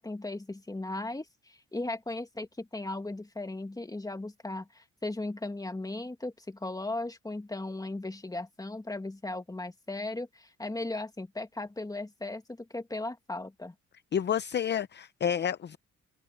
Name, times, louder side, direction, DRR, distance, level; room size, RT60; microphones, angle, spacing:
voice 1, 0.0-13.7, left 2 dB, 10° left, 2.1 m, -37 dB
voice 2, 14.1-15.8, left 8 dB, 35° left, 0.6 m, -29 dB
cardioid pair, 90°, 30 cm